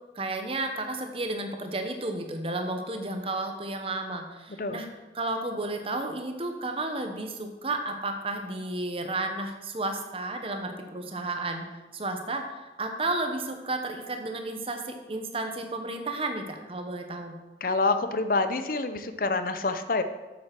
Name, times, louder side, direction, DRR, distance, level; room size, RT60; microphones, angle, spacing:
voice 1, 0.1-4.9 5.1-11.7 11.9-17.4, right 2 dB, 30° right, 5 dB, 1.0 m, -32 dB
voice 2, 17.6-20.0, left 3 dB, 50° left, 10 dB, 0.7 m, -27 dB
7.7 x 7.5 x 6.0 m, 1.2 s
head